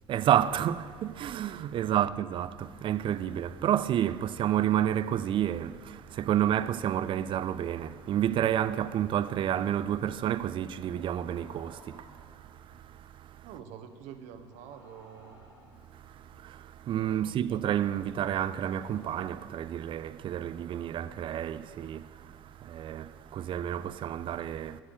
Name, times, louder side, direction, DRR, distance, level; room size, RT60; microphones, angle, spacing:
voice 1, 0.1-12.1 16.4-22.0 22.6-24.8, right 11 dB, 35° right, 0.4 m, -30 dB
sound 1, 5.5-5.6 6.8-8.4 8.9-9.2 10.7-12.8 14.3-16.4 17.9-20.0, equal, 85° left, 2.2 m, -57 dB
voice 2, 13.4-15.4 16.8-17.6, right 8 dB, 55° right, 0.8 m, -47 dB
12.0 x 4.8 x 8.2 m
figure-of-eight pair, 60°, 15 cm